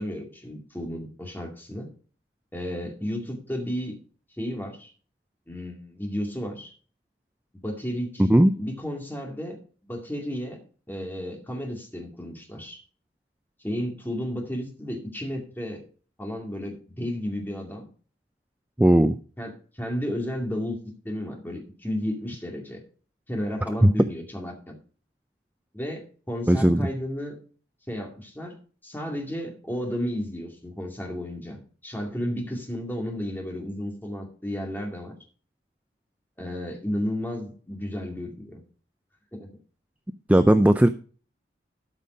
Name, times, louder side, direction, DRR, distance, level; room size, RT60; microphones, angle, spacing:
voice 1, 0.0-1.9 2.5-4.0 4.4-4.9 5.5-6.7 7.5-10.6 10.9-12.8 13.6-15.8 16.2-17.9 19.4-20.8 21.0-22.8 23.3-24.7 25.7-27.4 27.9-28.6 28.8-31.6 31.8-35.1 36.4-38.6 39.3-39.5, equal, 10° left, 1 dB, 2.3 m, -33 dB
voice 2, 8.2-8.5 18.8-19.1 23.8-23.9 26.5-26.9 40.3-40.9, right 1 dB, 10° right, 10 dB, 0.4 m, -17 dB
12.5 x 5.6 x 5.2 m, 0.41 s
head